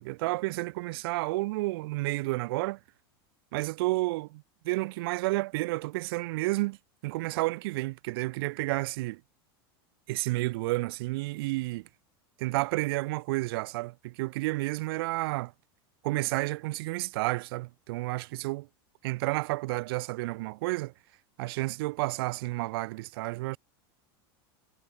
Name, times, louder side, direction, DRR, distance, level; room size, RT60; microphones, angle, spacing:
voice 1, 0.0-2.8 3.5-6.8 7.0-9.2 10.1-11.9 12.4-15.5 16.0-18.7 19.0-20.9 21.4-23.6, right 21 dB, 70° right, 0.6 m, -31 dB
supercardioid pair, 130°, 13 cm